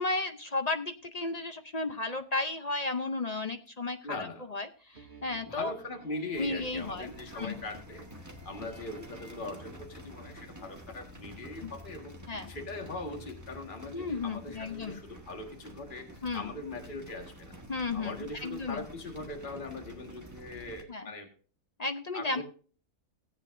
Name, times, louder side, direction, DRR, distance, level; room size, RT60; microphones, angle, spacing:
voice 1, 0.0-5.7 6.4-7.6 11.6-11.7 12.3-12.5 13.9-15.0 16.2-16.5 17.7-18.8 20.9-21.1 21.8-22.4, left 3 dB, 50° left, 7 dB, 0.4 m, -34 dB
voice 2, 4.0-4.5 5.5-12.2 12.5-17.6 17.9-21.3 22.1-22.4, left 2 dB, 35° left, 3 dB, 1.8 m, -41 dB
sound 1, 4.9-10.4, right 3 dB, 35° right, 1.5 m, -54 dB
sound 2, 6.3-20.8, equal, 10° right, 1.3 m, -49 dB
17.5 x 8.4 x 2.6 m, 0.40 s
omnidirectional pair, 1.6 m